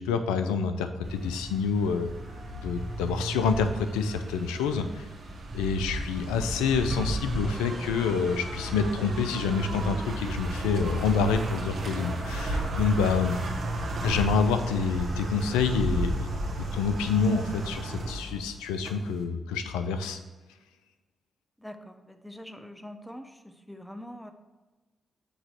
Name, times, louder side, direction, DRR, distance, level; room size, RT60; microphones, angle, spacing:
voice 1, 0.0-2.1 2.6-5.1 5.5-13.4 14.0-16.3 16.6-20.2, left 5 dB, 90° left, 9 dB, 0.4 m, -27 dB
sound 1, 1.0-19.2, right 1 dB, 70° right, 1.3 m, -34 dB
voice 2, 21.6-24.3, equal, 5° left, 7 dB, 0.7 m, -44 dB
7.9 x 3.1 x 6.3 m, 1.2 s
hypercardioid pair, 40°, 0 cm